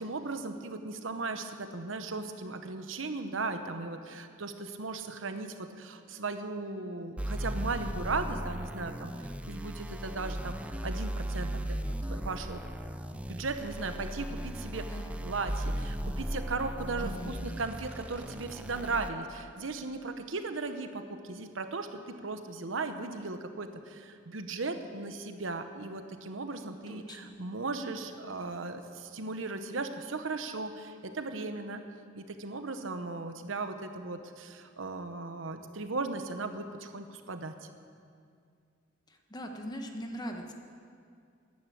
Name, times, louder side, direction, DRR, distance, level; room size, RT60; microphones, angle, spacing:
voice 1, 0.0-12.6 13.3-14.9 15.2-31.8 32.1-37.5, right 3 dB, 75° right, 8 dB, 1.0 m, -37 dB
sound 1, 7.2-19.1, right 1 dB, 5° right, 0.5 m, -37 dB
voice 2, 14.9-15.2 17.0-17.4 26.9-27.4 39.1-40.5, equal, 20° left, 3 dB, 1.3 m, -41 dB
12.5 x 10.5 x 8.5 m, 2.3 s
head